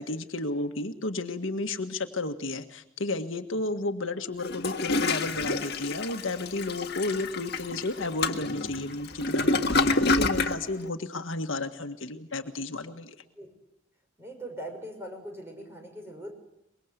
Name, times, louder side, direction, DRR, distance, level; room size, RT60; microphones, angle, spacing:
voice 1, 0.0-13.2, left 2 dB, 80° left, 6 dB, 1.7 m, -32 dB
Toilet flush, 4.4-10.6, left 3 dB, 55° left, 1.7 m, -27 dB
voice 2, 14.2-16.3, right 1 dB, 15° right, 3 dB, 6.1 m, -41 dB
24.5 x 22.5 x 8.2 m, 0.80 s
head